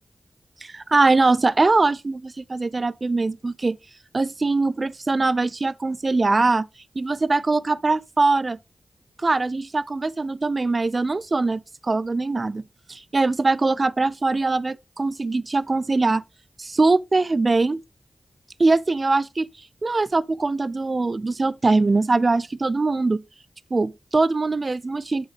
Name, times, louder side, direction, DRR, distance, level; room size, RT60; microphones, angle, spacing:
voice 1, 0.6-3.8 4.1-6.7 7.0-8.6 9.2-12.6 12.9-16.2 16.6-17.8 18.6-19.5 19.8-23.2 23.7-25.3, right 3 dB, 50° right, 0.4 m, -22 dB
7.4 x 5.4 x 3.3 m
cardioid pair, 45°, 0 cm